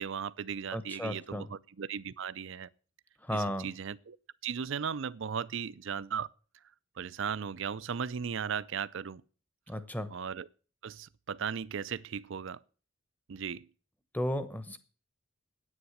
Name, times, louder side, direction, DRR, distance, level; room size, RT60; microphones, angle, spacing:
voice 1, 0.0-2.7 3.3-4.2 4.4-6.3 7.0-9.2 10.1-10.5 10.8-12.6 13.3-13.7, right 7 dB, 65° right, 0.5 m, -37 dB
voice 2, 0.7-1.5 3.2-3.7 9.7-10.1 14.1-14.8, equal, 10° left, 0.9 m, -34 dB
9.8 x 8.8 x 7.3 m
head